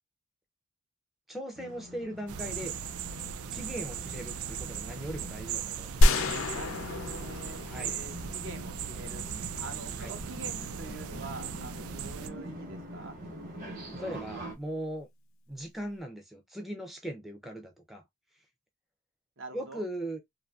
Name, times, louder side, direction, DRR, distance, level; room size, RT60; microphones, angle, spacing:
voice 1, 1.3-2.7 3.5-5.9 7.7-7.9 10.0-10.1 14.0-15.1 15.5-18.0 19.5-20.2, right 1 dB, ahead, 0.4 m, -39 dB
sound 1, 1.5-14.6, equal, 40° right, 1.0 m, -45 dB
sound 2, 2.3-12.3, right 8 dB, 85° right, 0.4 m, -38 dB
sound 3, 6.0-8.9, left 1 dB, 70° left, 0.4 m, -27 dB
voice 2, 6.5-9.2 9.6-13.2 19.4-19.8, right 2 dB, 60° right, 0.7 m, -45 dB
2.6 x 2.5 x 2.2 m
head